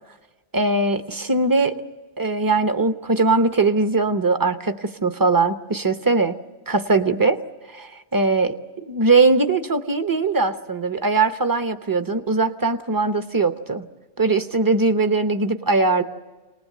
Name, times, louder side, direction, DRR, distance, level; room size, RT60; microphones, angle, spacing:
voice 1, 0.5-1.8 2.2-6.3 6.7-7.4 7.7-13.9 14.2-16.0, right 3 dB, 20° right, 9 dB, 0.8 m, -20 dB
28.0 x 19.5 x 7.6 m, 1.2 s
omnidirectional pair, 1.1 m